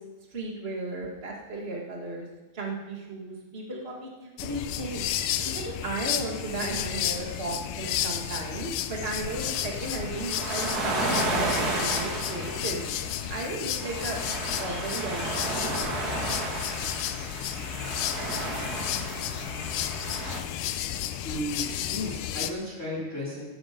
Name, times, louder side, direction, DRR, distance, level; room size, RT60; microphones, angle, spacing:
voice 1, 0.3-2.3 2.5-5.0 5.4-12.8 13.3-14.2 14.6-15.9, right 2 dB, 75° right, -1 dB, 0.5 m, -35 dB
sound 1, 4.4-22.5, left 11 dB, 80° left, 1.9 m, -32 dB
sound 2, 9.3-20.4, right 2 dB, 35° right, 1.8 m, -33 dB
voice 2, 21.2-23.4, left 1 dB, 20° left, -4 dB, 4.0 m, -34 dB
15.5 x 13.5 x 5.2 m, 1.2 s
omnidirectional pair, 4.5 m